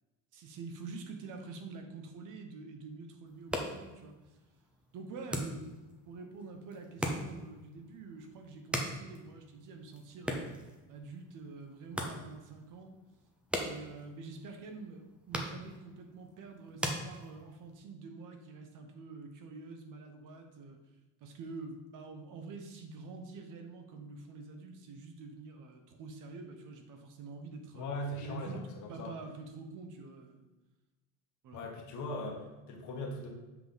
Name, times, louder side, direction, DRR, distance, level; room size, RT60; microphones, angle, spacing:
voice 1, 0.3-4.4 4.9-13.0 13.6-20.8 21.2-27.9 28.2-28.6 28.9-30.5 31.4-31.6, right 4 dB, 50° right, 5 dB, 0.9 m, -47 dB
sound 1, 3.3-17.8, equal, 5° right, 0.6 m, -42 dB
voice 2, 27.7-29.1 31.5-33.3, left 1 dB, 45° left, 1 dB, 1.4 m, -39 dB
7.7 x 5.3 x 3.9 m, 1.1 s
cardioid pair, 165°, 40 cm